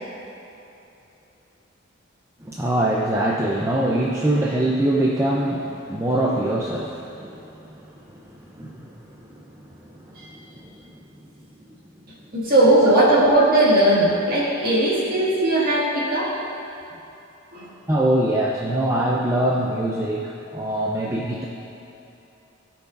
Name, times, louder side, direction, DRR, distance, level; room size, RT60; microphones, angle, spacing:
voice 1, 2.5-9.0 9.3-9.7 10.0-10.7 13.0-13.1 17.9-21.4, right 1 dB, 15° right, -4 dB, 0.5 m, -24 dB
voice 2, 12.3-16.3 17.5-17.7, right 1 dB, 45° right, -6 dB, 1.9 m, -18 dB
17.0 x 5.9 x 2.5 m, 3.0 s
head